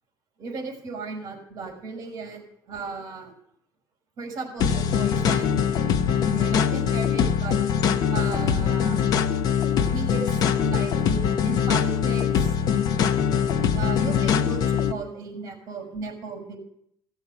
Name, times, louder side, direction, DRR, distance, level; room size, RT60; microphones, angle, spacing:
voice 1, 0.4-3.3 4.2-5.6 6.3-7.6 8.1-9.0 9.9-12.6 13.7-16.6, right 4 dB, 45° right, 1 dB, 5.3 m, -35 dB
sound 1, 4.6-14.9, left 8 dB, 55° left, 1.0 m, -22 dB
17.0 x 7.3 x 8.0 m, 0.72 s
cardioid pair, 155°, 8 cm